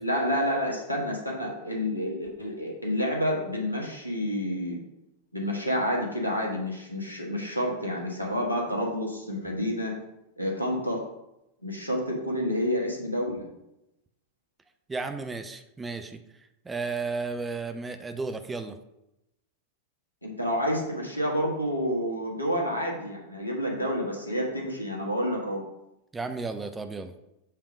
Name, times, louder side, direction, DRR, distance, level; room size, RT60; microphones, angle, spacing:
voice 1, 0.0-4.8 5.3-9.9 10.4-11.0 11.6-13.4 20.2-25.6, equal, 85° left, -1 dB, 1.4 m, -29 dB
voice 2, 14.9-16.2 16.6-18.8 26.1-27.1, right 4 dB, 15° right, 8 dB, 0.5 m, -33 dB
7.4 x 3.5 x 4.9 m, 0.89 s
figure-of-eight pair, 90°, 0 cm